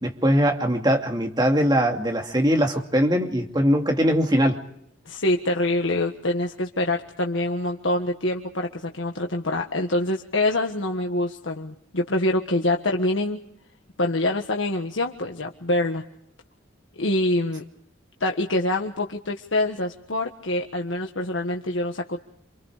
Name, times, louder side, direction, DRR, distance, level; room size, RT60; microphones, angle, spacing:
voice 1, 0.0-4.6, equal, 20° right, 2 dB, 2.6 m, -21 dB
voice 2, 5.0-13.4 14.0-16.0 17.0-17.6 18.2-22.3, left 1 dB, 80° left, 2 dB, 1.6 m, -25 dB
28.5 x 26.0 x 5.0 m, 0.71 s
head